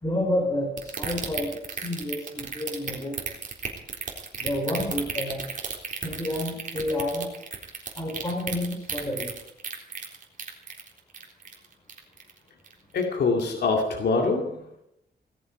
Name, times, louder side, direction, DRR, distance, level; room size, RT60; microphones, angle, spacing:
voice 1, 0.0-3.2 4.4-5.4 6.0-7.3 8.0-9.3, left 1 dB, 20° left, -1 dB, 4.6 m, -29 dB
sound 1, 0.8-12.4 12.7-13.0 13.4-13.5, right 5 dB, 50° right, 3.8 m, -33 dB
voice 2, 12.9-14.6, left 3 dB, 70° left, 2 dB, 2.3 m, -24 dB
18.5 x 14.0 x 5.4 m, 0.78 s
wide cardioid pair, 135°, 18 cm